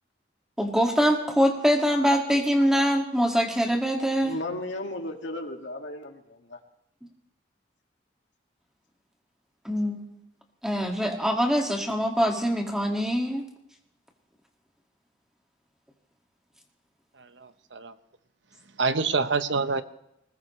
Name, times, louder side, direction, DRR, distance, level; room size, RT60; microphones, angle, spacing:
voice 1, 0.6-4.4 9.6-10.2 10.6-13.4, equal, 5° right, 2.1 m, -24 dB
voice 2, 4.2-6.6, left 1 dB, 85° left, 2.1 m, -35 dB
voice 3, 17.2-17.9 18.8-19.8, right 4 dB, 80° right, 1.0 m, -27 dB
20.5 x 19.5 x 3.2 m
head